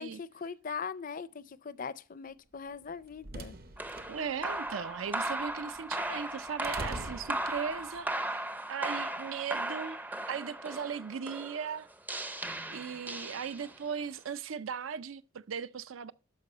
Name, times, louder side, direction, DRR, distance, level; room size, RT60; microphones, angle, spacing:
voice 1, 0.0-3.6, left 6 dB, 40° left, 0.5 m, -40 dB
sound 1, 2.7-8.0, right 2 dB, 45° right, 0.8 m, -45 dB
sound 2, 3.8-13.9, right 1 dB, 10° right, 0.5 m, -37 dB
voice 2, 4.1-10.0 10.3-11.9 12.7-16.1, right 7 dB, 80° right, 0.5 m, -38 dB
12.0 x 4.9 x 5.5 m
head